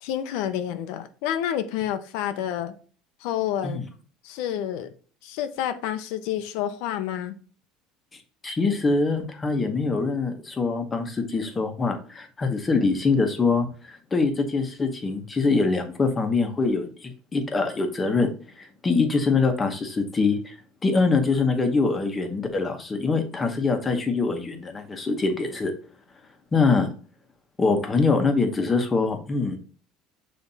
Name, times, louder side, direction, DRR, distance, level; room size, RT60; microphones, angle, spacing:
voice 1, 0.0-2.7 3.2-3.8 4.2-4.9 5.2-7.4, left 10 dB, 70° left, 0.7 m, -29 dB
voice 2, 8.4-20.5 20.8-25.7 26.5-26.9 27.6-29.6, left 4 dB, 15° left, 1.0 m, -24 dB
7.1 x 3.4 x 4.1 m
cardioid pair, 155°, 0 cm